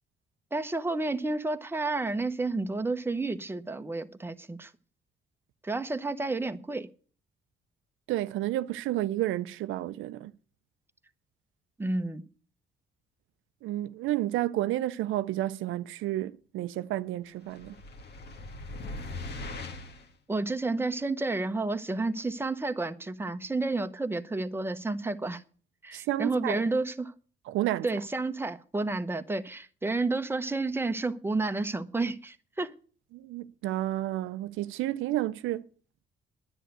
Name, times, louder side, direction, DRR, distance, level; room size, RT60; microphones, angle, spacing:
voice 1, 0.5-4.7 5.6-6.9 11.8-12.2 20.3-25.4 25.8-27.1 27.8-32.7, right 3 dB, 10° right, 0.9 m, -31 dB
voice 2, 8.1-10.3 13.6-17.8 25.9-26.6 27.5-27.9 33.1-35.7, right 14 dB, 90° right, 0.5 m, -31 dB
sound 1, 17.5-20.1, left 2 dB, 55° left, 1.6 m, -40 dB
10.0 x 8.0 x 7.9 m
cardioid pair, 90°, 20 cm